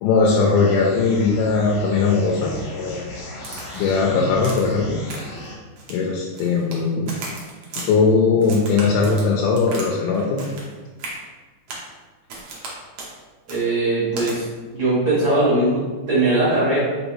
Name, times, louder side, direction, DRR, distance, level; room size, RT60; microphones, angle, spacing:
voice 1, 0.0-3.1 3.7-5.0 5.9-7.1 7.9-10.4, left 4 dB, 85° left, -1 dB, 2.1 m, -19 dB
sound 1, 0.6-5.6, left 1 dB, 70° left, 1.5 m, -37 dB
Crack, 3.4-4.0 4.4-4.8 5.1-5.5 5.8-6.8 7.1-7.9 8.4-9.9 10.1-10.7 11.0-11.2 11.7-11.9 12.3-12.7 13.0-13.1 13.5-13.6 14.2-14.4, right 3 dB, 65° right, 1.6 m, -35 dB
voice 2, 13.5-14.4 14.7-16.8, right 2 dB, 50° right, -10 dB, 1.9 m, -20 dB
5.3 x 3.2 x 3.0 m, 1.3 s
omnidirectional pair, 3.7 m